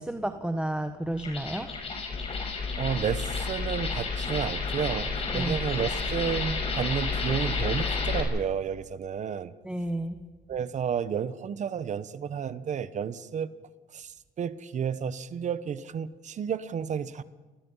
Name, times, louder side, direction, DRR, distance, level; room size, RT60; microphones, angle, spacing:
voice 1, 0.0-1.7 5.3-5.6 9.6-10.2, right 1 dB, 5° right, 7 dB, 1.3 m, -31 dB
sound 1, 1.1-8.2, left 4 dB, 35° left, 6.2 m, -31 dB
voice 2, 2.8-9.5 10.5-13.5 13.9-17.3, right 7 dB, 45° right, 15 dB, 1.1 m, -31 dB
28.5 x 20.5 x 5.7 m, 1.3 s
cardioid pair, 110°, 17 cm